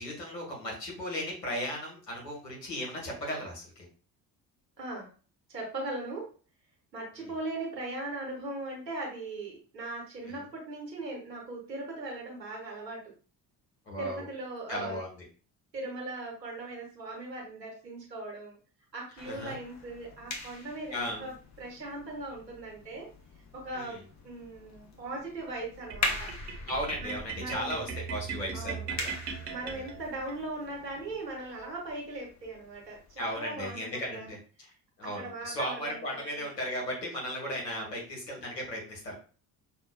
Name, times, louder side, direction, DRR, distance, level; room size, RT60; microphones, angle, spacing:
voice 1, 0.0-3.8 13.9-14.2 14.7-15.1 19.2-19.5 20.9-21.2 23.7-24.0 26.7-29.1 29.7-29.8 33.2-34.7 35.0-39.1, equal, 80° left, -3 dB, 1.5 m, -36 dB
voice 2, 4.8-5.1 5.5-6.3 6.9-13.0 14.0-15.0 15.7-18.6 18.9-23.1 23.5-26.3 27.0-27.8 28.5-28.9 29.5-34.3 35.0-36.5 37.7-37.9, right 2 dB, 85° right, -2 dB, 1.2 m, -39 dB
sound 1, 19.2-33.4, left 2 dB, 35° left, 0.9 m, -42 dB
sound 2, 25.9-30.4, right 6 dB, 50° right, 1.0 m, -39 dB
5.8 x 2.5 x 2.2 m, 0.38 s
figure-of-eight pair, 50°, 49 cm